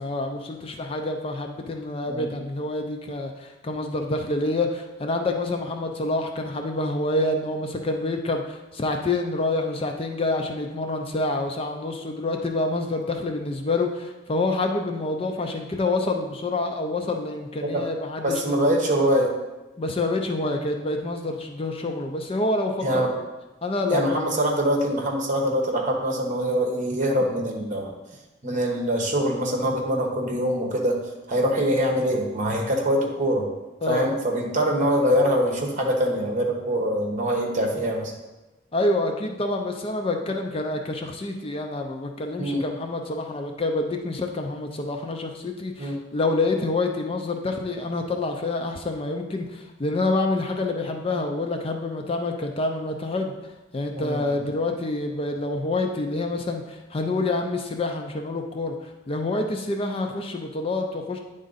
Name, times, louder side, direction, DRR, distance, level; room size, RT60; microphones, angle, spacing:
voice 1, 0.0-18.6 19.8-23.0 23.6-24.1 33.8-34.1 38.7-53.3 53.7-61.2, left 2 dB, 30° left, 4 dB, 0.4 m, -27 dB
voice 2, 18.2-19.3 22.8-23.1 23.9-27.9 28.4-31.0 31.3-33.5 33.9-38.1 42.4-42.6 45.8-45.9 53.9-54.4, equal, 40° right, 1 dB, 1.1 m, -24 dB
9.2 x 3.8 x 4.0 m, 1.1 s
head